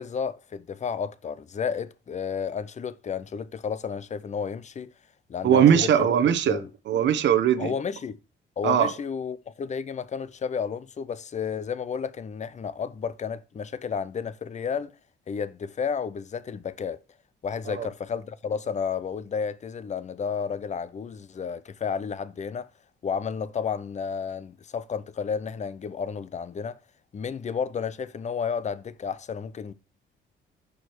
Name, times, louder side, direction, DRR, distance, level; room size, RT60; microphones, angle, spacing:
voice 1, 0.0-4.9 5.3-6.1 6.5-6.7 7.6-8.2 8.6-15.0 15.3-17.0 17.4-22.7 23.0-26.8 27.1-29.7, left 6 dB, 35° left, 0.6 m, -32 dB
voice 2, 5.4-6.6 6.9-7.7 8.6-8.9 17.7-17.9, right 9 dB, 65° right, 0.9 m, -20 dB
6.2 x 4.7 x 4.5 m
cardioid pair, 90°, 20 cm